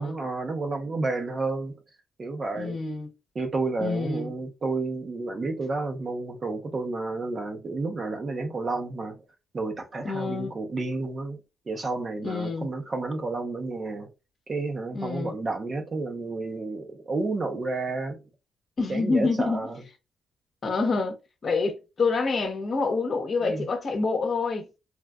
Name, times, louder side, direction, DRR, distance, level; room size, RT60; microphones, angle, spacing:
voice 1, 0.0-1.8 2.2-2.8 3.3-9.2 9.5-11.4 11.7-14.1 14.5-18.2 18.9-19.8 23.4-23.7, right 3 dB, 35° right, 0.7 m, -31 dB
voice 2, 2.5-3.1 3.8-4.3 10.0-10.5 12.2-12.7 14.9-15.3 18.8-19.6 20.6-21.1 21.4-24.6, left 4 dB, 40° left, 0.9 m, -27 dB
3.5 x 2.5 x 2.2 m
cardioid pair, 125°, 0 cm